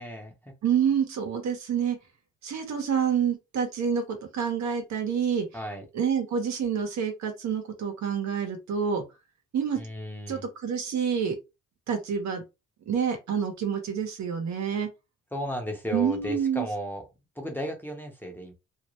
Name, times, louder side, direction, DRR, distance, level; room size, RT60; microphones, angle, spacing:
voice 1, 0.0-0.5 5.5-5.8 9.8-10.4 15.3-17.0 17.4-18.5, equal, 5° left, 0.8 m, -34 dB
voice 2, 0.6-2.0 2.4-5.4 5.9-9.0 9.5-9.8 10.3-11.4 11.9-12.4 12.9-14.9 15.9-16.7, right 7 dB, 65° right, 1.0 m, -27 dB
2.5 x 2.1 x 3.0 m
cardioid pair, 90°, 30 cm